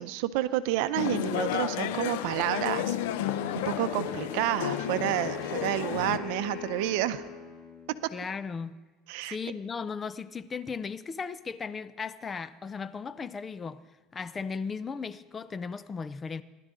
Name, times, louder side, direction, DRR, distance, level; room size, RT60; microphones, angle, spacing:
voice 1, 0.0-3.0 3.6-7.2 9.1-9.4, right 14 dB, 75° right, 0.6 m, -29 dB
sound 1, 1.0-6.2, left 11 dB, 85° left, 0.6 m, -32 dB
Wind instrument woodwind instrument, 3.2-8.2, left 6 dB, 55° left, 5.3 m, -41 dB
voice 2, 8.1-8.8 9.3-13.8 14.1-16.4, left 5 dB, 25° left, 0.5 m, -36 dB
19.5 x 11.5 x 3.8 m
supercardioid pair, 120°, 0 cm